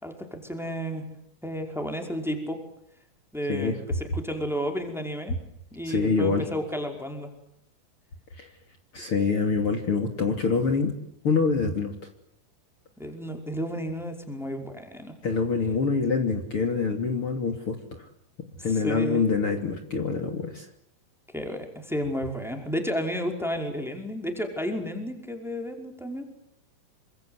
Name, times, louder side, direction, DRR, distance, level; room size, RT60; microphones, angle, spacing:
voice 1, 0.0-1.0 1.4-2.6 3.3-5.4 5.7-7.3 13.0-15.1 18.7-19.2 21.3-26.3, equal, ahead, 4 dB, 4.9 m, -32 dB
voice 2, 5.8-6.5 8.4-8.5 8.9-10.9 11.2-11.9 15.2-18.1 18.6-20.7, left 4 dB, 40° left, 4 dB, 3.7 m, -25 dB
28.0 x 26.0 x 8.2 m, 0.74 s
omnidirectional pair, 3.7 m